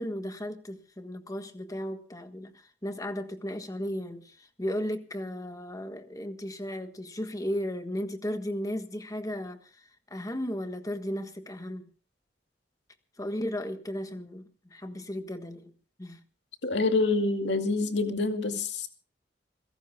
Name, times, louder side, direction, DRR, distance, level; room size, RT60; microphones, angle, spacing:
voice 1, 0.0-9.8 10.1-11.9 13.2-15.7 16.0-16.2, equal, 20° left, 1.4 m, -35 dB
voice 2, 16.6-18.9, left 3 dB, 70° left, 2.3 m, -26 dB
28.0 x 17.0 x 2.3 m
head